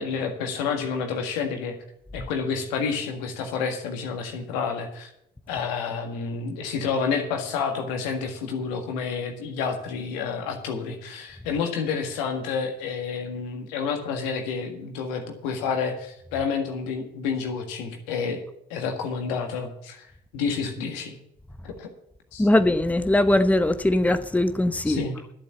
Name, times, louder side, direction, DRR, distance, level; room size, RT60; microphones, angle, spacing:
voice 1, 0.0-1.8 2.1-5.1 5.5-18.4 18.7-20.1 20.3-21.1 21.6-21.9 22.3-22.5 24.8-25.2, left 5 dB, 80° left, 1.8 m, -29 dB
voice 2, 22.4-25.1, left 1 dB, 5° left, 0.9 m, -21 dB
12.0 x 7.7 x 6.9 m
hypercardioid pair, 50°, 21 cm